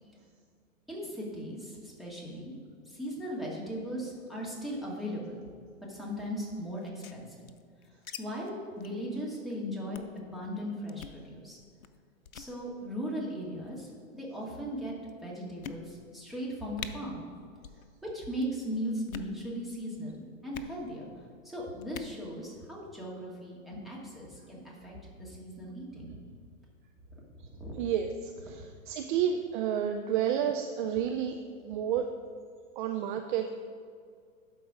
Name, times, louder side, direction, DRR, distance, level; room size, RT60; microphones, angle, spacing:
voice 1, 0.9-2.5 2.9-5.4 5.9-7.3 8.2-11.6 12.3-13.9 14.1-14.9 15.2-17.2 18.0-21.1 21.4-26.1 27.6-27.7, equal, ahead, -5 dB, 2.1 m, -38 dB
sound 1, 6.8-8.2 8.4-8.5 8.8-9.0 9.3-9.5 9.9-10.2 10.9-11.2 11.8-12.0 12.3-12.5 13.4-13.8 14.5-14.6 15.1-15.2 15.6-16.2 16.4-16.5 16.8-16.9 17.6-17.8 18.1-18.5 19.0-19.4 20.5-20.7 21.8-22.2, left 7 dB, 80° left, 0.7 m, -44 dB
voice 2, 27.7-32.1 32.8-33.5, right 9 dB, 40° right, 6 dB, 0.5 m, -31 dB
11.5 x 4.6 x 5.0 m, 2.1 s
figure-of-eight pair, 105°, 41 cm